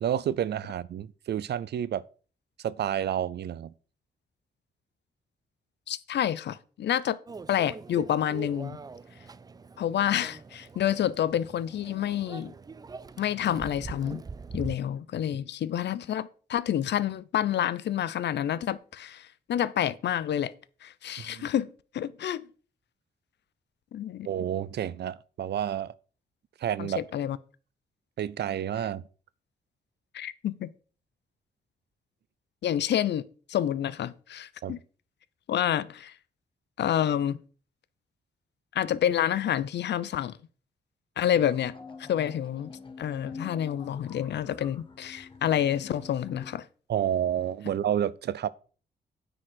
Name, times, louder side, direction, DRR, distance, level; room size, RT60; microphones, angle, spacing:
voice 1, 0.0-2.0 2.6-3.7 21.2-21.5 24.2-25.9 26.6-27.0 28.2-29.1 34.6-34.7 46.9-48.5, right 10 dB, 75° right, 0.5 m, -30 dB
voice 2, 5.9-7.2 7.5-8.8 9.8-12.5 13.2-14.2 14.5-20.5 20.8-22.5 23.9-24.3 26.8-27.4 30.1-30.7 32.6-33.2 33.5-34.8 35.5-36.1 36.8-37.4 38.7-40.4 41.2-41.7 42.1-46.7, left 10 dB, 90° left, 0.7 m, -28 dB
Microwave oven, 7.3-14.8, right 4 dB, 20° right, 0.4 m, -43 dB
sound 1, 41.3-46.6, left 4 dB, 30° left, 1.2 m, -46 dB
9.7 x 4.9 x 6.3 m
wide cardioid pair, 145°, 18 cm